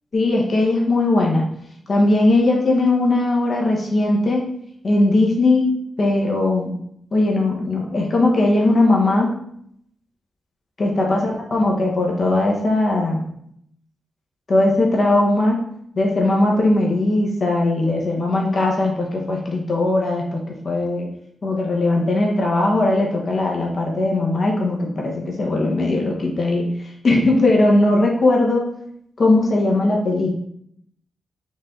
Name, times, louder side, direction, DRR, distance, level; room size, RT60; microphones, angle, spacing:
voice 1, 0.1-1.4 1.9-4.4 4.8-5.7 6.0-6.7 7.1-9.3 10.8-13.2 14.5-15.6 16.0-20.4 20.6-21.1 21.4-26.7 27.0-28.7 29.2-30.3, left 2 dB, 55° left, -1 dB, 1.2 m, -19 dB
4.8 x 2.8 x 3.7 m, 0.69 s
supercardioid pair, 45°, 0 cm